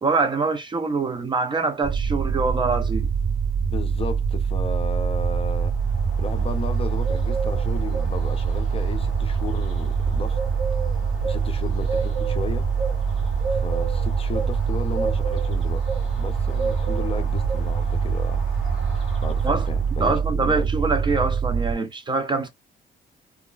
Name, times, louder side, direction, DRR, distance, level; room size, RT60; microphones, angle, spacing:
voice 1, 0.0-3.1 19.4-19.7 20.0-22.5, right 4 dB, 25° right, 0.4 m, -24 dB
sound 1, 1.8-21.7, right 6 dB, 60° right, 0.8 m, -24 dB
voice 2, 3.7-5.7 6.2-10.4 11.2-12.7 13.5-15.8 16.2-18.5 19.2-20.7, left 4 dB, 30° left, 0.5 m, -34 dB
sound 2, 5.4-20.0, right 3 dB, 5° right, 1.5 m, -35 dB
2.8 x 2.3 x 2.2 m
cardioid pair, 150°, 20 cm